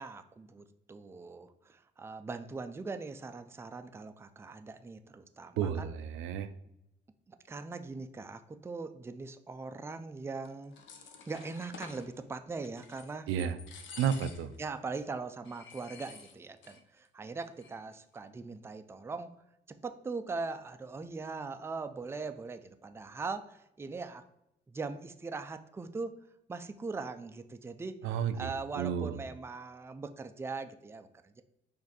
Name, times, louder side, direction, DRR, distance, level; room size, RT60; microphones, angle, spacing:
voice 1, 0.0-5.9 7.3-13.3 14.6-19.3 19.8-24.2 24.7-26.1 26.5-28.0 28.3-31.4, right 4 dB, 15° right, 9 dB, 0.3 m, -41 dB
voice 2, 5.6-6.5 13.3-13.6 14.0-14.5 28.0-29.2, right 8 dB, 90° right, 11 dB, 0.4 m, -32 dB
sound 1, 10.5-12.1 12.6-13.1 13.4-14.6 14.9-15.0 15.4-16.8 17.1-17.2 17.4-17.9, left 5 dB, 70° left, 0.7 m, -50 dB
5.0 x 2.6 x 4.0 m, 0.83 s
cardioid pair, 90°, 20 cm